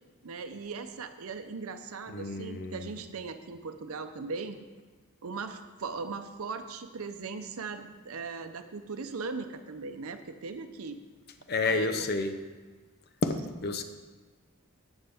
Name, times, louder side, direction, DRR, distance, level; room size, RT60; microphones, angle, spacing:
voice 1, 0.2-4.6 5.2-11.0 11.6-11.9, right 4 dB, 85° right, 8 dB, 0.6 m, -38 dB
voice 2, 2.1-3.0 11.5-12.3 13.2-13.8, left 3 dB, 50° left, 8 dB, 0.7 m, -30 dB
11.0 x 8.0 x 3.5 m, 1.3 s
head